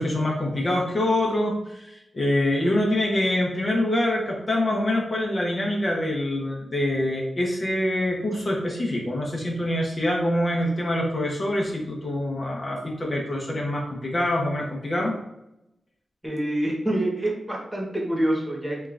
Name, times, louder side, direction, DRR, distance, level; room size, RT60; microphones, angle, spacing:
voice 1, 0.0-15.2, left 1 dB, 40° left, -2 dB, 1.0 m, -25 dB
voice 2, 16.2-18.9, right 1 dB, 10° right, -2 dB, 1.2 m, -26 dB
5.1 x 2.6 x 2.5 m, 0.84 s
cardioid pair, 70°, 0 cm